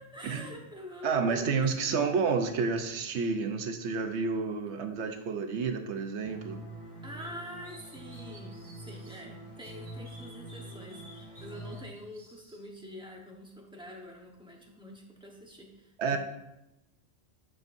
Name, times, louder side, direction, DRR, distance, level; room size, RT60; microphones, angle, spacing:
voice 1, 0.0-2.1 7.0-16.2, equal, 5° right, -1 dB, 1.1 m, -46 dB
voice 2, 1.0-6.6 16.0-16.2, right 5 dB, 85° right, 6 dB, 1.0 m, -30 dB
sound 1, 6.2-11.8, right 1 dB, 55° left, 2.9 m, -45 dB
sound 2, 7.2-9.2 9.6-12.6, equal, 55° right, 2.6 m, -56 dB
9.7 x 6.2 x 2.6 m, 0.91 s
omnidirectional pair, 1.1 m